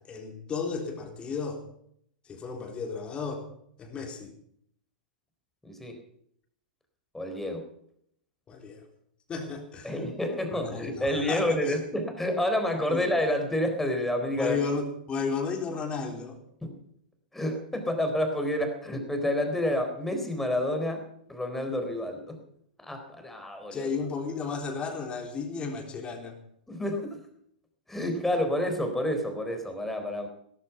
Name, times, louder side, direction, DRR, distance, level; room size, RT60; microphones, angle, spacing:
voice 1, 0.0-1.6 2.3-3.5 3.8-4.3 8.5-8.8 9.3-9.9 10.5-11.8 12.9-13.0 14.4-16.4 23.7-26.4, left 5 dB, 20° left, 2 dB, 3.7 m, -33 dB
voice 2, 5.6-6.0 7.1-7.7 9.8-14.6 16.6-16.8 17.3-22.4 22.8-23.9 26.7-27.2 27.9-30.3, left 1 dB, 5° left, 6 dB, 3.9 m, -29 dB
16.5 x 14.0 x 5.8 m, 0.69 s
hypercardioid pair, 110°, 5 cm